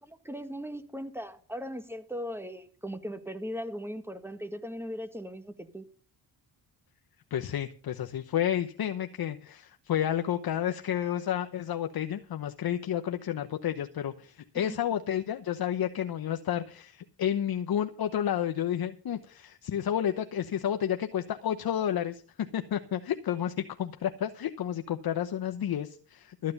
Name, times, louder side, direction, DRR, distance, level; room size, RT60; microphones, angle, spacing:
voice 1, 0.0-5.8 14.5-14.8, equal, 5° right, 10 dB, 1.8 m, -38 dB
voice 2, 7.3-26.5, left 10 dB, 60° left, 7 dB, 1.0 m, -31 dB
13.5 x 9.5 x 5.3 m, 0.40 s
cardioid pair, 80°, 41 cm